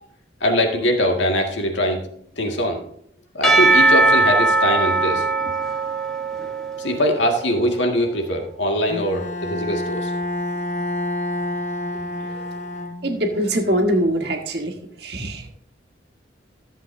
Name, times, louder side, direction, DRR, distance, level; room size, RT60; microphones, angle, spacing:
voice 1, 0.4-2.0 2.4-2.8 3.3-5.3 6.8-10.1 12.3-12.5, equal, 85° left, 3 dB, 1.8 m, -22 dB
Percussion / Church bell, 3.4-7.6, right 2 dB, 5° left, 1.1 m, -19 dB
Bowed string instrument, 8.9-13.4, left 1 dB, 40° left, 0.8 m, -28 dB
voice 2, 13.0-15.5, right 1 dB, 60° right, 3 dB, 1.5 m, -23 dB
14.5 x 7.5 x 2.6 m, 0.66 s
head